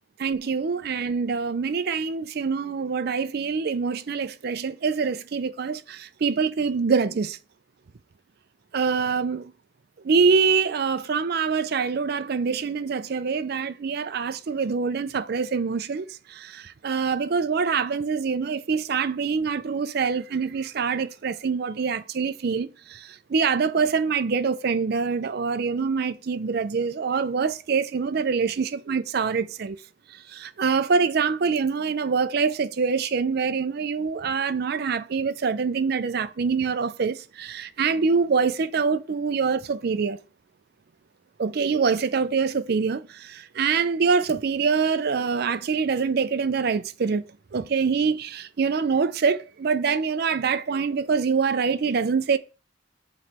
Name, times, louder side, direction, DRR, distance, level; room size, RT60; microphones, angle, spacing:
voice 1, 0.2-7.4 8.7-9.4 10.0-29.8 30.1-40.2 41.4-47.2 47.5-52.4, right 5 dB, 55° right, 0.4 m, -25 dB
7.7 x 3.1 x 4.2 m
head